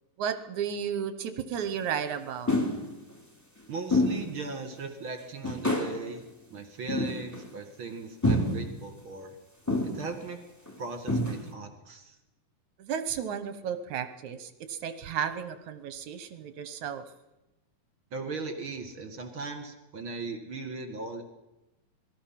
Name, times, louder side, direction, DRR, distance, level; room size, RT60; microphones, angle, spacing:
voice 1, 0.2-2.5 12.8-17.0, right 8 dB, 65° right, 10 dB, 2.1 m, -33 dB
sound 1, 1.6-1.7 2.5-2.9 3.9-4.3 4.7-4.8 5.4-6.0 6.9-7.5 8.2-8.7 9.7-10.1 10.7-10.8 11.1-11.5, left 1 dB, 5° left, 2.2 m, -27 dB
voice 2, 3.7-6.2 6.5-9.4 9.9-10.4 10.8-12.2 18.1-21.2, right 3 dB, 45° right, 6 dB, 2.3 m, -38 dB
27.0 x 20.0 x 5.9 m, 0.98 s
omnidirectional pair, 4.1 m